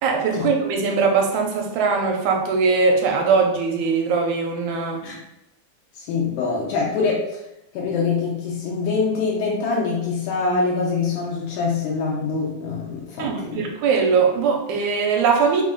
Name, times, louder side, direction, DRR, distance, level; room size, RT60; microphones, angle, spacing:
voice 1, 0.0-5.0 13.2-15.6, right 5 dB, 85° right, 2 dB, 2.0 m, -20 dB
voice 2, 5.9-7.4 7.7-13.6, left 4 dB, 80° left, -4 dB, 2.1 m, -24 dB
5.1 x 2.1 x 3.6 m, 0.87 s
omnidirectional pair, 3.3 m